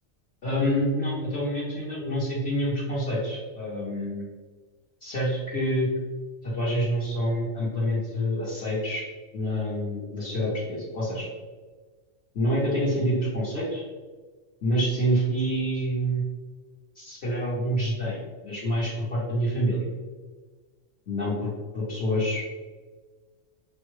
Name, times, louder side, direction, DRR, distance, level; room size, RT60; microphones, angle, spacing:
voice 1, 0.4-4.2 5.0-5.9 6.4-9.1 9.3-11.3 12.3-13.8 14.6-16.2 16.9-19.9 21.1-22.5, equal, 55° left, -9 dB, 1.2 m, -27 dB
5.6 x 2.2 x 3.1 m, 1.4 s
omnidirectional pair, 1.3 m